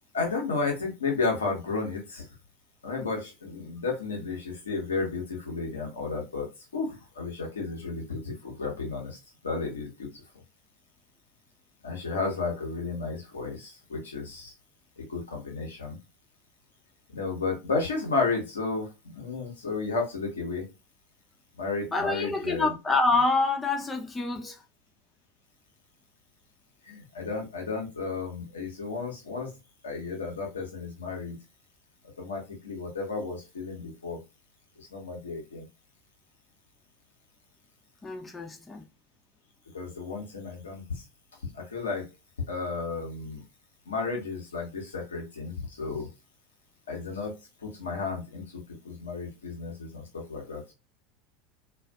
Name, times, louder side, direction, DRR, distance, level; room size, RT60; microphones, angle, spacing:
voice 1, 0.1-2.3 2.8-6.5 6.7-10.1 11.8-14.5 15.0-16.0 17.1-20.6 21.6-22.7 26.9-29.5 29.8-31.4 32.2-34.2 34.8-35.6 39.7-40.8 41.5-42.0 42.5-43.4 43.9-46.1 46.9-47.3 47.6-50.7, left 4 dB, 80° left, 1.0 m, -33 dB
voice 2, 21.9-24.6 38.0-38.8, left 3 dB, 20° left, 0.7 m, -27 dB
2.5 x 2.4 x 2.3 m
figure-of-eight pair, 80°, 0 cm